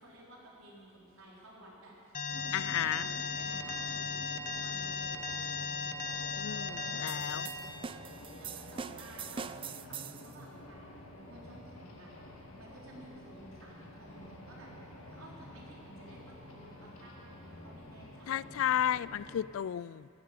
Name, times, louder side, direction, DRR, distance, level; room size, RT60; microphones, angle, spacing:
voice 1, 0.0-4.2 4.6-5.6 6.5-7.0 8.0-14.7 15.1-18.6, right 1 dB, 90° right, -4 dB, 3.9 m, -54 dB
Alarm, 2.1-7.5, left 5 dB, 40° left, 0.9 m, -36 dB
sound 1, 2.3-19.4, left 1 dB, 85° left, 2.3 m, -50 dB
voice 2, 2.5-3.1 6.4-7.5 18.3-20.1, left 10 dB, 70° left, 20 dB, 0.3 m, -33 dB
sound 2, 7.1-10.3, right 6 dB, 25° right, 0.3 m, -43 dB
16.0 x 10.5 x 7.5 m, 2.4 s
head